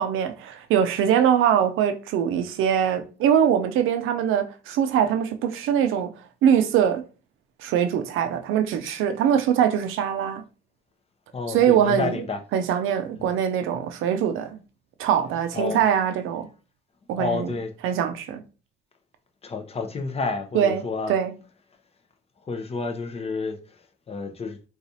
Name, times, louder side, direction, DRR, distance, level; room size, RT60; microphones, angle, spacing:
voice 1, 0.0-6.1 6.4-7.0 7.6-10.4 11.5-12.2 12.5-14.6 15.0-16.5 17.1-17.5 17.8-18.4 20.5-21.3, right 9 dB, 85° right, 0.5 m, -22 dB
voice 2, 11.3-12.4 13.2-13.3 15.5-15.8 17.2-17.7 19.4-21.1 22.5-23.6 24.1-24.6, left 4 dB, 30° left, 0.6 m, -30 dB
4.0 x 2.4 x 2.7 m
cardioid pair, 95°, 20 cm